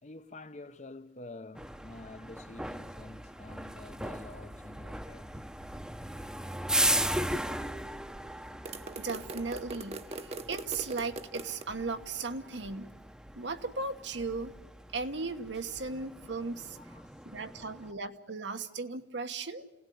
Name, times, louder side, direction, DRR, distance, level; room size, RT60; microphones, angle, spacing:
voice 1, 0.0-5.4 16.8-17.4 17.8-17.9, left 2 dB, 40° left, 0.8 m, -48 dB
sound 1, 1.5-17.9, right 1 dB, 5° right, 0.8 m, -37 dB
sound 2, 8.6-11.7, right 3 dB, 35° right, 0.9 m, -41 dB
voice 2, 9.0-13.0 13.3-14.6 14.9-16.8 17.2-19.7, right 4 dB, 80° right, 1.4 m, -37 dB
27.5 x 18.0 x 9.4 m
head